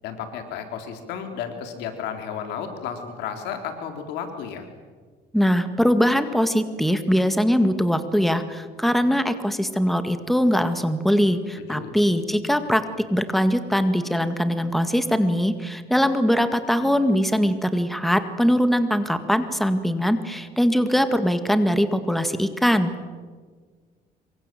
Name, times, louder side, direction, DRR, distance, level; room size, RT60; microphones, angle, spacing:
voice 1, 0.0-4.7 11.6-11.9, left 7 dB, 90° left, 6 dB, 3.7 m, -33 dB
voice 2, 5.3-12.8 13.1-22.9, equal, ahead, 9 dB, 1.9 m, -21 dB
26.5 x 24.0 x 7.8 m, 1.5 s
cardioid pair, 110°, 17 cm